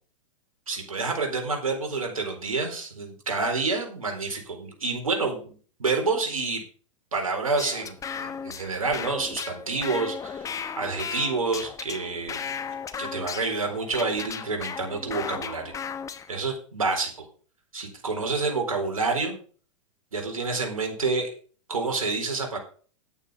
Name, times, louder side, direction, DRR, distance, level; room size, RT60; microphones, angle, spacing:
voice 1, 0.7-6.6 7.1-12.5 13.0-15.7 16.3-17.3 17.7-19.4 20.1-21.3 21.7-22.6, right 3 dB, 85° right, 3 dB, 4.3 m, -28 dB
sound 1, 7.6-16.4, left 7 dB, 20° left, 1.0 m, -36 dB
10.5 x 9.0 x 5.2 m, 0.41 s
hypercardioid pair, 110°, 17 cm